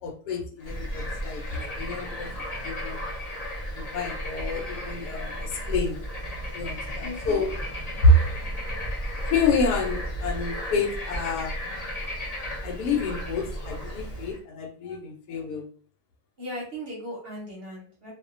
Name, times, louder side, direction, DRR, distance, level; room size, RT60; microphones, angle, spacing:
voice 1, 0.0-3.0 3.8-6.0 6.5-7.5 8.0-8.2 9.3-11.5 12.6-15.7, left 2 dB, 90° left, 3 dB, 1.2 m, -27 dB
Bird / Frog, 0.6-14.4, equal, 50° left, 0.4 m, -34 dB
voice 2, 7.0-7.5 16.4-18.1, equal, 50° right, -3 dB, 0.8 m, -37 dB
2.7 x 2.1 x 2.4 m, 0.43 s
omnidirectional pair, 1.7 m